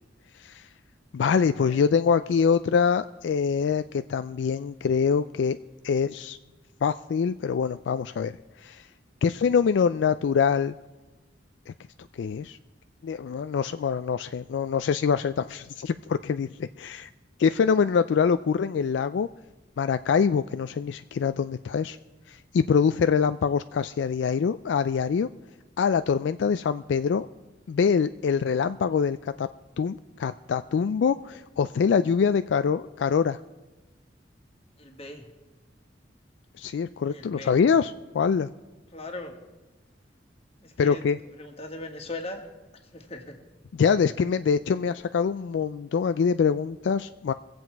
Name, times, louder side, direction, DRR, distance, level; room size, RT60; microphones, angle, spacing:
voice 1, 1.1-5.6 5.8-6.4 6.8-8.9 9.2-10.7 12.2-12.6 13.0-17.1 17.4-19.3 19.8-22.0 22.3-25.3 25.8-27.3 27.7-29.5 29.8-33.4 36.6-38.5 40.8-41.2 43.8-47.3, left 6 dB, 70° left, 11 dB, 0.3 m, -24 dB
voice 2, 34.8-35.2 37.1-37.5 38.9-39.4 40.6-41.0 41.4-42.4 42.9-43.4, left 2 dB, 35° left, 4 dB, 1.6 m, -39 dB
23.0 x 7.8 x 4.6 m, 1.2 s
head